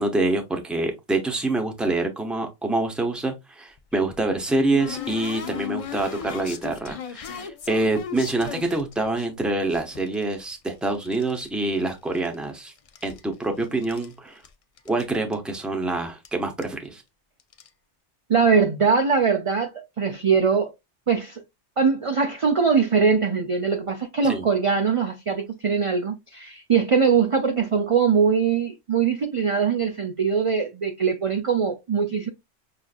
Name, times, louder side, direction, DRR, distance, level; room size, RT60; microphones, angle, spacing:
voice 1, 0.0-12.7 13.0-14.4 14.9-17.0 24.2-24.4, right 2 dB, ahead, 0.6 m, -26 dB
sound 1, 3.8-9.3 9.7-11.5 11.8-12.5 12.8-14.1 14.4-14.5 14.8-15.0 15.3-15.4 16.2-16.3 16.6-16.9 17.4-17.7, left 8 dB, 65° left, 0.3 m, -37 dB
voice 2, 18.3-20.7 21.1-21.4 21.8-32.3, right 6 dB, 50° right, 0.4 m, -22 dB
5.6 x 2.5 x 2.4 m
omnidirectional pair, 1.2 m